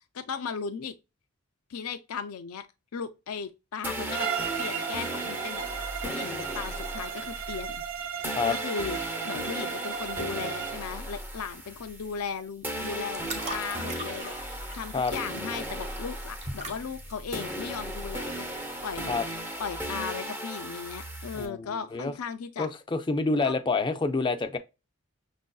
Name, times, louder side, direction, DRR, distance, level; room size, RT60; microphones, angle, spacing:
voice 1, 0.2-0.9 1.7-2.7 2.9-4.3 4.6-5.7 6.0-7.8 8.5-9.0 9.2-14.3 14.7-18.5 18.8-19.1 19.6-22.7 23.4-23.5, left 6 dB, 90° left, 0.5 m, -36 dB
sound 1, 3.8-12.3 12.6-21.4, equal, 10° right, 0.7 m, -36 dB
Bowed string instrument, 4.1-10.9, right 8 dB, 60° right, 0.4 m, -35 dB
sound 2, 12.6-19.4, right 1 dB, 30° right, 1.0 m, -42 dB
voice 2, 21.3-22.1 22.6-24.6, left 3 dB, 20° left, 0.4 m, -28 dB
6.1 x 2.5 x 2.3 m
head